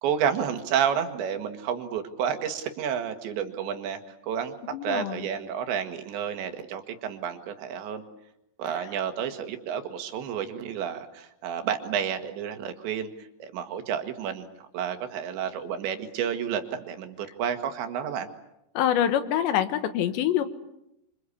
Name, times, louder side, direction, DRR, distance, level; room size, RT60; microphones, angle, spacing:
voice 1, 0.0-8.0 8.6-14.5 14.7-18.3, right 8 dB, 85° right, 7 dB, 4.1 m, -30 dB
voice 2, 4.7-5.3 18.8-20.4, left 10 dB, 85° left, 10 dB, 3.6 m, -25 dB
27.0 x 26.0 x 8.5 m, 0.84 s
omnidirectional pair, 5.0 m